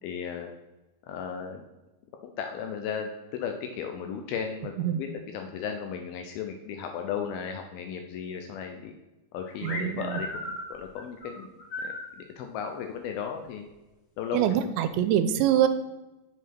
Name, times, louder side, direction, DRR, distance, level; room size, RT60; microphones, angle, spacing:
voice 1, 0.0-0.5 1.1-1.6 2.2-8.9 9.3-11.5 11.8-13.7 14.2-14.6, left 7 dB, 90° left, 4 dB, 2.1 m, -35 dB
sound 1, 9.6-12.1, left 1 dB, 45° left, 2.4 m, -36 dB
voice 2, 9.6-10.2 14.3-15.7, right 10 dB, 85° right, 11 dB, 2.8 m, -24 dB
7.7 x 5.1 x 5.8 m, 1.0 s
omnidirectional pair, 5.1 m